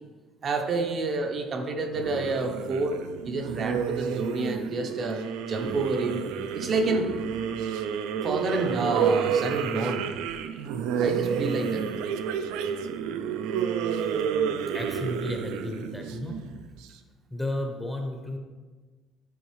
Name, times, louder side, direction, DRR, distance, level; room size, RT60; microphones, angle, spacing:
voice 1, 0.4-3.0 3.2-5.2 5.5-6.2 6.5-7.1 7.4-7.5 8.2-10.1 11.0-11.9, right 3 dB, 35° right, 4 dB, 0.5 m, -29 dB
sound 1, 2.0-16.9, right 7 dB, 85° right, 0.4 m, -30 dB
voice 2, 14.7-16.4 17.3-18.4, left 1 dB, 5° left, 2 dB, 0.6 m, -33 dB
8.6 x 3.6 x 3.1 m, 1.4 s
cardioid pair, 145°, 0 cm